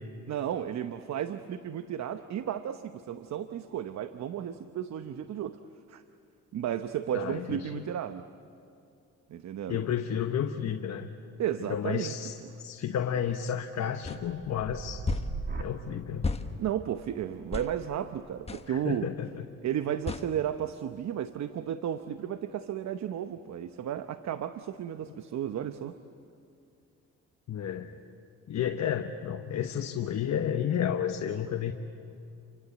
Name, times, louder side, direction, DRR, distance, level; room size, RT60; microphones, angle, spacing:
voice 1, 0.3-5.6 5.9-6.0 6.5-8.3 9.3-9.8 11.4-12.1 16.6-19.1 19.6-26.0, right 10 dB, 65° right, 10 dB, 0.9 m, -33 dB
voice 2, 7.1-7.8 9.7-11.1 11.7-15.0 15.6-16.3 18.7-19.6 27.5-28.0 28.5-31.7, left 9 dB, 60° left, 5 dB, 1.2 m, -32 dB
sound 1, 14.0-14.2 15.0-15.3 16.2-16.5 17.5-17.7 18.5-18.7 20.1-20.3, left 4 dB, 20° left, 1.4 m, -32 dB
sound 2, 14.0-21.9 22.3-22.8, right 4 dB, 35° right, 2.7 m, -44 dB
29.0 x 24.0 x 8.4 m, 2.6 s
cardioid pair, 90°, 30 cm